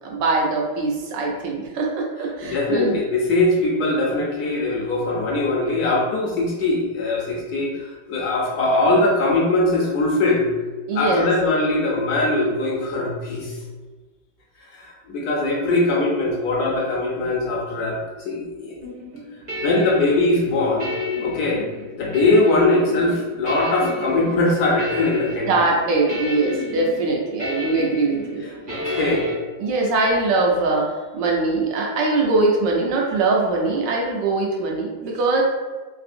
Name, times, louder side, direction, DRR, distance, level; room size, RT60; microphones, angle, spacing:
voice 1, 0.0-3.0 10.9-11.3 25.5-28.5 28.9-29.2 29.6-35.4, right 3 dB, 85° right, -1 dB, 1.4 m, -22 dB
voice 2, 2.4-10.5 10.9-13.6 14.7-18.8 19.6-20.9 21.2-21.7 22.0-25.5 28.7-29.2, left 2 dB, 70° left, -2 dB, 1.0 m, -21 dB
sound 1, 18.8-29.3, left 2 dB, 50° right, 0.6 m, -32 dB
3.4 x 2.6 x 2.5 m, 1.3 s
omnidirectional pair, 1.9 m